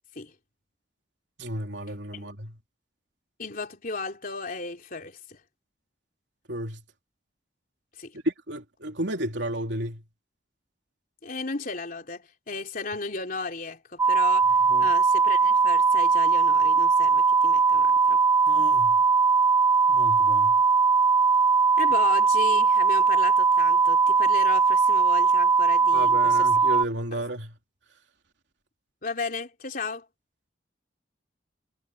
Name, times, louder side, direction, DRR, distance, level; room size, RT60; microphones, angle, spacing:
voice 1, 1.4-2.5 6.5-6.8 8.2-10.0 14.7-14.9 18.5-19.0 19.9-20.6 25.9-27.6, right 1 dB, 80° right, 3.3 m, -32 dB
voice 2, 3.4-5.4 8.0-8.2 11.2-18.2 21.8-26.5 29.0-30.1, left 3 dB, 50° left, 3.5 m, -35 dB
sound 1, 14.0-26.9, right 5 dB, 15° right, 0.7 m, -20 dB
head